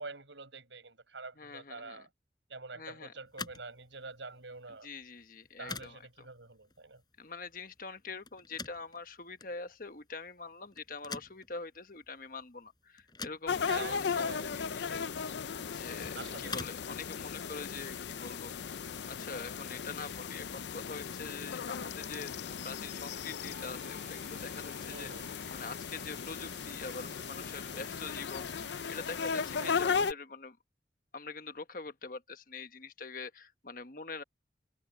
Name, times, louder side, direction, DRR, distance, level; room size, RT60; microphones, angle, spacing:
voice 1, 0.0-2.1 2.5-4.9 5.6-7.0 13.6-14.5 16.1-16.6 24.9-25.3 29.5-29.8, right 3 dB, 90° right, 7.9 m, -46 dB
voice 2, 1.4-2.1 2.8-3.1 4.8-6.3 7.2-15.0 15.6-18.5 19.1-28.5 28.9-30.6 31.1-34.2, left 4 dB, 50° left, 1.3 m, -44 dB
sound 1, 3.2-18.2, left 4 dB, 25° left, 6.2 m, -48 dB
sound 2, 13.5-30.1, left 6 dB, 70° left, 0.5 m, -37 dB
sound 3, 23.5-29.6, right 5 dB, 65° right, 2.7 m, -56 dB
head